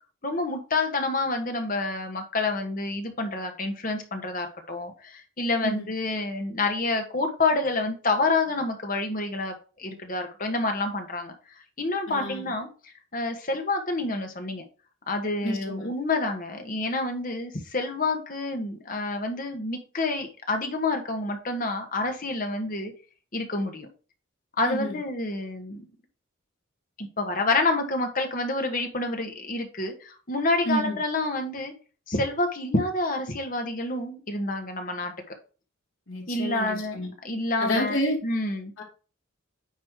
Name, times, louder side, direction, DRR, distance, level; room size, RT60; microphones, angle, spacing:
voice 1, 0.2-11.3 11.8-14.6 15.1-22.9 23.3-23.9 24.6-25.8 27.0-31.7 32.1-35.1 36.3-38.7, left 2 dB, 40° left, 4 dB, 1.5 m, -28 dB
voice 2, 12.1-12.5 15.4-15.9 24.6-25.0 30.7-31.0 36.1-37.1 37.6-38.2 38.8-38.9, left 1 dB, 70° left, -2 dB, 2.7 m, -29 dB
9.4 x 3.3 x 4.8 m, 0.35 s
head